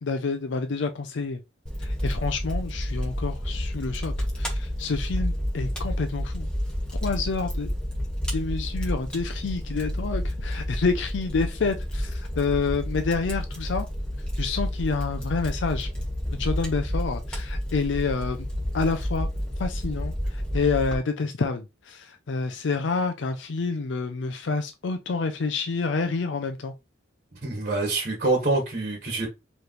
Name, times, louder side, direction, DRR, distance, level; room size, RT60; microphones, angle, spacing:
voice 1, 0.0-1.4 1.8-6.5 7.0-7.7 8.3-13.9 14.4-15.9 16.3-18.5 18.7-19.3 19.6-26.7, left 4 dB, 75° left, 0.5 m, -28 dB
Fire, 1.7-20.9, equal, 5° left, 1.2 m, -30 dB
voice 2, 27.4-29.3, right 2 dB, 40° right, 1.5 m, -25 dB
4.8 x 3.2 x 3.1 m
head